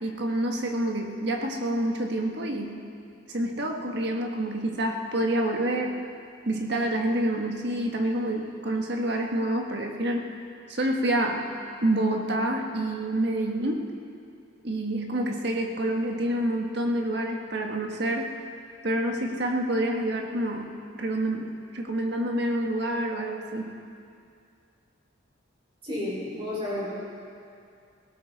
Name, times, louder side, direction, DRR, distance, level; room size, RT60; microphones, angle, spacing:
voice 1, 0.0-2.8 3.3-5.9 6.4-10.3 10.7-11.5 11.8-13.9 14.6-18.3 18.8-20.7 21.0-23.7, right 1 dB, 60° right, 2 dB, 1.6 m, -27 dB
voice 2, 25.8-26.9, left 1 dB, 30° right, -7 dB, 5.1 m, -31 dB
18.0 x 17.5 x 4.2 m, 2.4 s
head